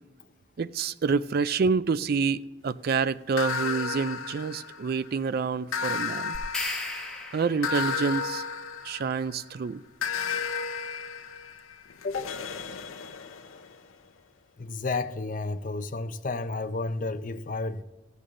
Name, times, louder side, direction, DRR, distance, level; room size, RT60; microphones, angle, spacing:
voice 1, 0.6-6.4 7.3-8.4 8.8-9.8, right 5 dB, 50° right, 0.3 m, -27 dB
sound 1, 3.4-5.1 5.7-9.4 10.0-13.7, left 6 dB, 90° left, 0.7 m, -33 dB
sound 2, 6.3-7.9, left 2 dB, 5° left, 1.2 m, -35 dB
voice 2, 14.6-17.8, left 3 dB, 40° left, 0.6 m, -31 dB
15.0 x 8.2 x 3.8 m
head